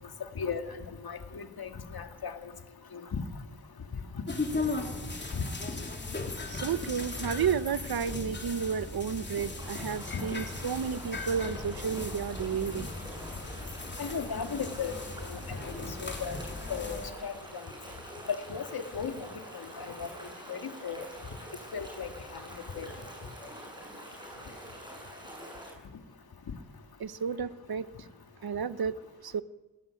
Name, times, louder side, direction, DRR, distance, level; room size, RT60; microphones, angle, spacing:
voice 1, 1.0-2.3 2.9-3.2 5.3-5.4 10.1-10.2 14.0-15.0 15.3-15.7 16.0-16.4 16.7-17.3 18.3-19.3 19.5-20.1 20.5-21.0 21.7-22.1 22.8-22.9, left 6 dB, 70° left, 6 dB, 2.2 m, -35 dB
sound 1, 4.3-17.1, left 3 dB, 30° left, 3.4 m, -37 dB
voice 2, 6.5-12.9 27.0-28.1 28.4-28.9 29.2-29.4, right 7 dB, 75° right, 14 dB, 1.0 m, -32 dB
sound 2, 9.5-25.7, right 1 dB, 10° right, 7.3 m, -46 dB
19.5 x 18.5 x 9.0 m, 1.2 s
wide cardioid pair, 175°, 37 cm